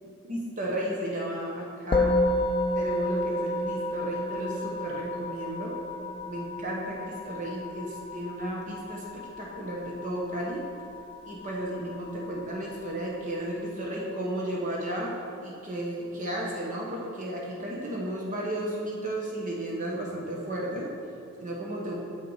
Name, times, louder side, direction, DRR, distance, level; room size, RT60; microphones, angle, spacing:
voice 1, 0.3-2.1 2.7-5.8 6.2-10.6 11.2-15.1 15.4-20.9 21.4-22.0, right 1 dB, 35° right, -3 dB, 1.0 m, -33 dB
Musical instrument, 1.9-11.4, left 1 dB, 25° left, 0.4 m, -30 dB
7.6 x 6.7 x 4.7 m, 2.5 s
head